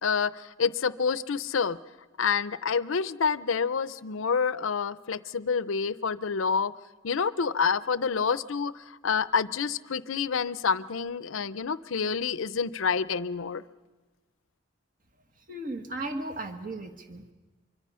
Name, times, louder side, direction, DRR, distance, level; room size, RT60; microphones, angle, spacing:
voice 1, 0.0-1.8 2.2-6.7 7.0-13.6, left 5 dB, 85° left, 15 dB, 0.6 m, -28 dB
voice 2, 15.5-17.3, right 2 dB, 45° right, 5 dB, 1.6 m, -36 dB
25.0 x 24.0 x 5.6 m, 1.2 s
head